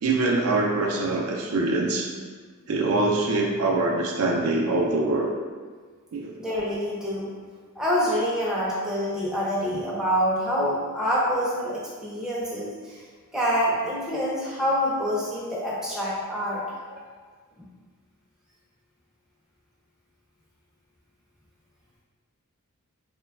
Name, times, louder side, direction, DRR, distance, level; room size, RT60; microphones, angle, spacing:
voice 1, 0.0-2.1 2.7-5.3 6.1-6.3, right 2 dB, 70° right, 0 dB, 0.4 m, -24 dB
voice 2, 6.4-7.3 7.8-13.0 13.3-16.6 16.9-17.0, equal, 5° right, -7 dB, 0.5 m, -26 dB
3.0 x 2.2 x 2.3 m, 1.5 s
head